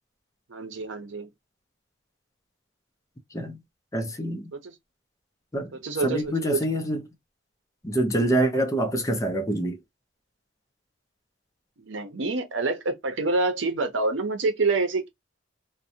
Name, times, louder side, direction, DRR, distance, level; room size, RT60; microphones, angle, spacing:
voice 1, 0.5-1.3 4.5-4.7 5.8-6.6 11.8-15.1, right 3 dB, 80° right, 0.7 m, -27 dB
voice 2, 3.9-4.5 5.5-5.7 6.0-7.0 7.8-9.8, right 1 dB, 15° left, 0.5 m, -25 dB
2.5 x 2.1 x 2.6 m
head